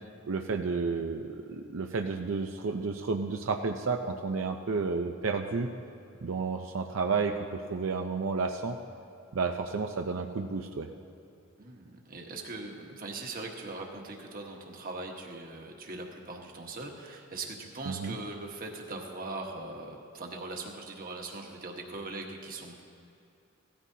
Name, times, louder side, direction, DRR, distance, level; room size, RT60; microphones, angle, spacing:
voice 1, 0.2-5.7 6.2-8.8 9.3-10.9 17.9-18.1, right 4 dB, 85° right, 4 dB, 0.6 m, -31 dB
voice 2, 11.6-22.8, right 2 dB, 45° right, 1 dB, 1.3 m, -40 dB
17.0 x 14.0 x 2.8 m, 2.7 s
head